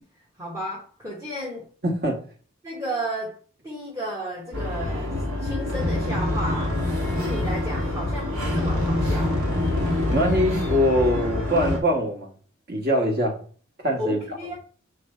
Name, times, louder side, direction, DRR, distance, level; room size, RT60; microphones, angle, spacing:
voice 1, 0.4-1.7 2.6-3.4 3.6-6.8 7.2-9.4 14.0-14.6, equal, 15° right, 1.0 m, -33 dB
voice 2, 1.8-2.2 10.1-12.3 12.7-13.4 13.8-14.2, equal, 45° right, 1.5 m, -22 dB
sound 1, 4.5-11.8, left 1 dB, 70° right, 1.8 m, -25 dB
6.9 x 3.2 x 4.3 m
head